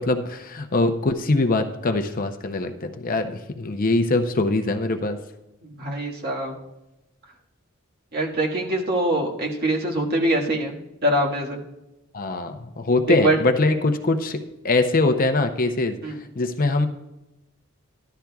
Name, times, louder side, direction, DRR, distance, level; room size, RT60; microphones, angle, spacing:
voice 1, 0.0-5.2 12.1-14.4 14.6-16.0 16.4-16.9, left 2 dB, 45° left, 7 dB, 0.6 m, -22 dB
voice 2, 5.6-6.5 8.1-10.7 11.0-11.6 13.1-13.4 16.0-16.2, right 1 dB, 50° right, -1 dB, 1.7 m, -23 dB
13.5 x 11.5 x 2.3 m, 0.93 s
head